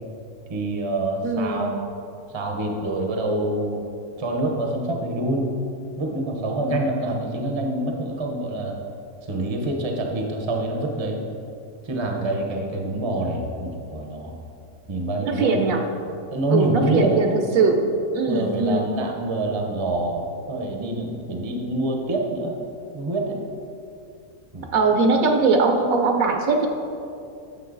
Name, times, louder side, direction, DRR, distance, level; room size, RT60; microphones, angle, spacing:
voice 1, 0.5-1.8 2.3-3.8 4.2-5.5 6.0-8.8 9.3-11.2 11.8-14.4 14.9-15.5 16.3-17.2 18.3-22.6 22.9-23.4 24.5-24.7, right 2 dB, 25° right, 2 dB, 0.7 m, -26 dB
voice 2, 1.2-1.8 15.2-15.8 16.5-17.9 18.1-18.8 24.7-26.7, right 4 dB, 65° right, 4 dB, 1.1 m, -20 dB
9.2 x 6.6 x 3.9 m, 2.6 s
omnidirectional pair, 1.6 m